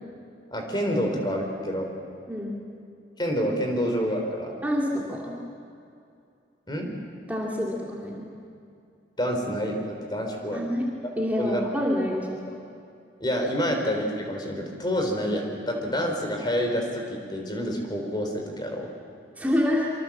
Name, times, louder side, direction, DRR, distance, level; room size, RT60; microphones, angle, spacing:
voice 1, 0.5-1.9 3.2-4.5 6.7-6.9 9.2-10.6 11.0-11.1 11.4-11.6 13.2-18.9, equal, 25° left, 2 dB, 3.9 m, -28 dB
voice 2, 2.3-2.6 4.6-5.3 7.3-8.3 10.5-10.9 11.2-12.4 19.4-19.9, left 1 dB, 10° right, -3 dB, 2.7 m, -27 dB
26.0 x 25.0 x 7.5 m, 2.5 s
head